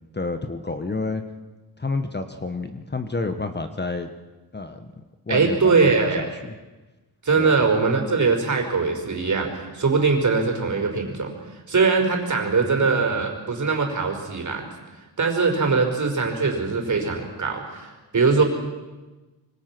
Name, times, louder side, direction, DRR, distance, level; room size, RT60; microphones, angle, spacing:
voice 1, 0.1-1.2 1.8-4.1 4.5-4.9 5.3-6.6 7.4-7.7, left 3 dB, 25° left, 8 dB, 1.3 m, -29 dB
voice 2, 5.3-6.3 7.2-11.3 11.7-14.7 15.2-18.4, right 4 dB, 45° right, 3 dB, 5.2 m, -21 dB
26.0 x 24.0 x 6.1 m, 1.2 s
wide cardioid pair, 130°, 41 cm